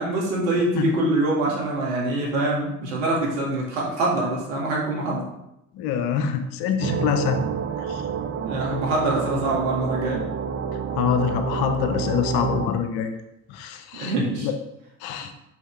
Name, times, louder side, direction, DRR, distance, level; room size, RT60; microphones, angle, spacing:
voice 1, 0.0-5.3 8.4-10.2 13.9-14.5, right 2 dB, 75° right, -3 dB, 2.1 m, -24 dB
voice 2, 5.8-7.4 7.9-8.0 10.9-13.1 13.5-14.1 14.4-14.5 15.0-15.3, left 8 dB, 65° left, 7 dB, 0.9 m, -25 dB
sound 1, 6.8-12.7, right 6 dB, 35° right, 0.6 m, -28 dB
5.5 x 5.4 x 3.3 m, 0.86 s
hypercardioid pair, 60°, 41 cm